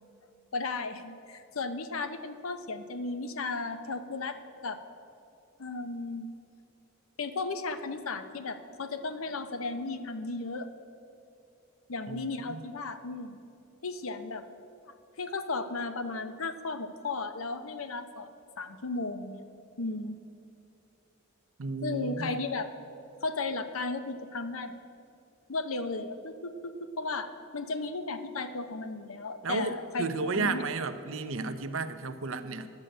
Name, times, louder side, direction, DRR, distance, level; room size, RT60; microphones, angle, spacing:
voice 1, 0.5-4.4 4.6-4.8 5.6-6.3 7.2-10.7 11.9-13.4 13.8-14.4 15.2-18.3 18.6-19.4 19.8-20.2 21.8-22.7 23.2-24.8 25.5-30.1 30.3-30.6, left 3 dB, 90° left, 9 dB, 0.8 m, -35 dB
voice 2, 21.6-22.3 29.4-32.7, right 3 dB, 75° right, 10 dB, 0.7 m, -33 dB
10.5 x 6.6 x 8.8 m, 2.7 s
head